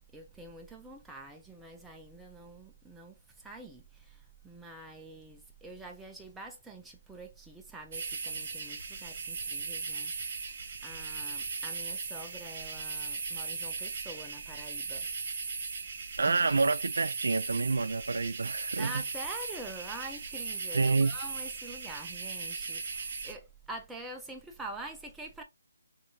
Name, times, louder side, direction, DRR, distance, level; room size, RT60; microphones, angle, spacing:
voice 1, 0.1-10.6 10.8-15.1 18.8-25.4, right 2 dB, 5° right, 0.4 m, -46 dB
sound 1, 7.9-23.3, right 4 dB, 40° right, 0.7 m, -38 dB
voice 2, 16.2-18.9 20.7-21.1, right 3 dB, 75° right, 0.4 m, -28 dB
3.6 x 2.6 x 2.8 m
hypercardioid pair, 160°, 0 cm